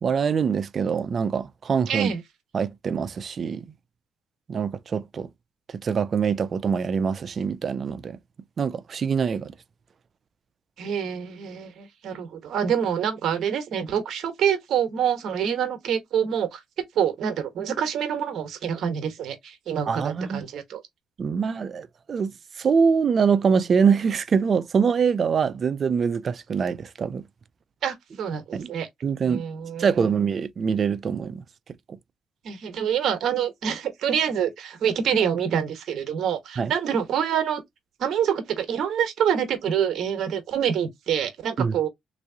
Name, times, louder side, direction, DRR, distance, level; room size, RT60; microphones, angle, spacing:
voice 1, 0.0-2.1 2.5-3.7 4.5-5.3 5.7-8.2 8.6-9.5 19.9-20.4 21.2-22.3 22.6-27.2 28.5-28.7 29.0-29.4 29.8-31.4 31.9-32.0 36.6-36.7 41.6-41.8, right 6 dB, 45° right, 0.5 m, -24 dB
voice 2, 1.9-2.2 10.8-16.6 16.9-20.8 27.8-28.9 29.3-29.9 32.4-37.6 38.0-41.9, right 8 dB, 70° right, 1.1 m, -26 dB
3.3 x 3.0 x 2.7 m
cardioid pair, 90°, 0 cm